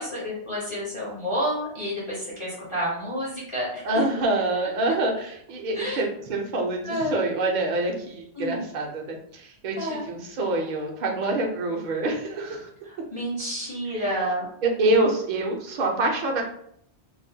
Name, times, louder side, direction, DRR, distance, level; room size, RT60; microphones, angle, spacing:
voice 1, 0.0-4.0 5.7-6.0 6.8-7.2 8.4-8.6 9.8-10.0 13.1-14.5, equal, 35° left, -6 dB, 0.5 m, -29 dB
voice 2, 3.8-12.7 13.9-14.1 14.6-16.4, right 2 dB, 55° right, 1 dB, 0.5 m, -26 dB
2.4 x 2.1 x 2.6 m, 0.70 s
omnidirectional pair, 1.1 m